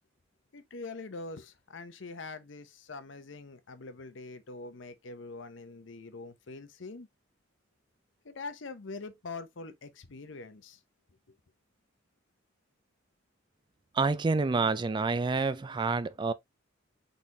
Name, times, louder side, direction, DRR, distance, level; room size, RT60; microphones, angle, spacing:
voice 1, 0.5-7.1 8.2-10.8 11.3-11.4, left 3 dB, 65° left, 0.8 m, -44 dB
voice 2, 13.9-16.3, right 4 dB, 25° right, 0.3 m, -28 dB
4.0 x 4.0 x 2.9 m
head